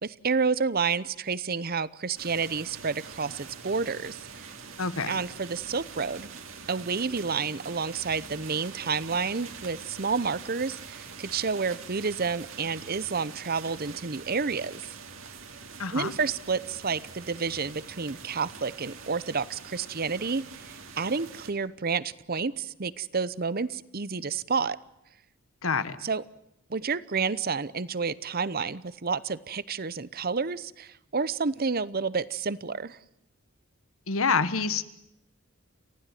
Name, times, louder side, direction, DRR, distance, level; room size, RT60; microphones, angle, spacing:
voice 1, 0.0-4.4 5.1-6.3 6.7-14.9 15.9-24.8 26.0-26.2 26.7-33.0, right 5 dB, 45° right, 18 dB, 0.8 m, -30 dB
sound 1, 2.2-21.5, right 5 dB, 65° right, 2.8 m, -44 dB
voice 2, 4.8-5.1 15.8-16.1 25.6-26.0 34.1-34.9, left 5 dB, 75° left, 13 dB, 1.4 m, -27 dB
29.5 x 15.5 x 9.2 m, 0.83 s
head